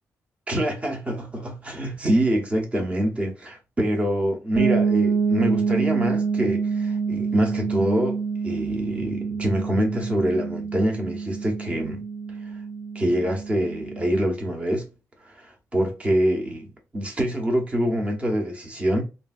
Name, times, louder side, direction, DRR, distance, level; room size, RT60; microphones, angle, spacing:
voice 1, 0.5-12.0 12.9-14.9 15.3-19.0, equal, 20° right, 1.0 m, -25 dB
sound 1, 4.6-14.2, right 5 dB, 40° right, 1.4 m, -26 dB
3.2 x 2.6 x 2.3 m
cardioid pair, 125°, 6 cm